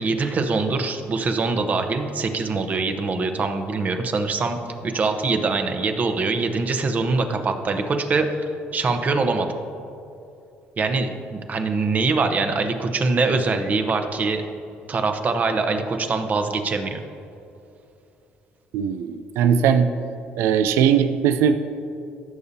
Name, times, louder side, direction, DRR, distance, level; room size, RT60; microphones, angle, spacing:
voice 1, 0.0-8.4 8.7-9.5 10.8-14.4 14.9-17.0, right 3 dB, 40° right, 6 dB, 0.9 m, -23 dB
voice 2, 18.7-19.9 20.4-21.5, right 8 dB, 85° right, 9 dB, 0.4 m, -19 dB
16.0 x 6.8 x 2.8 m, 2.7 s
cardioid pair, 95°, 4 cm